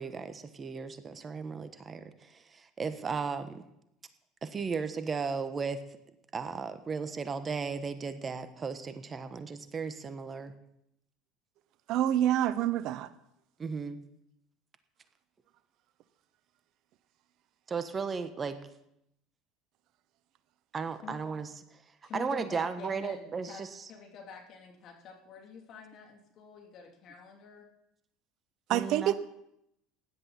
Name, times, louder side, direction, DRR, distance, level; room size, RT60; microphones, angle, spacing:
voice 1, 0.0-3.6 4.4-5.8 6.3-10.5 13.6-14.0 17.7-18.6 20.7-21.8 22.1-23.9 28.7-29.1, right 5 dB, 30° right, 10 dB, 1.2 m, -35 dB
voice 2, 11.9-13.1 28.7-29.1, right 12 dB, 60° right, 14 dB, 0.8 m, -27 dB
voice 3, 22.0-23.6 23.9-27.7, left 6 dB, 55° left, 1 dB, 3.2 m, -47 dB
16.5 x 10.5 x 4.2 m, 0.79 s
hypercardioid pair, 75°, 0 cm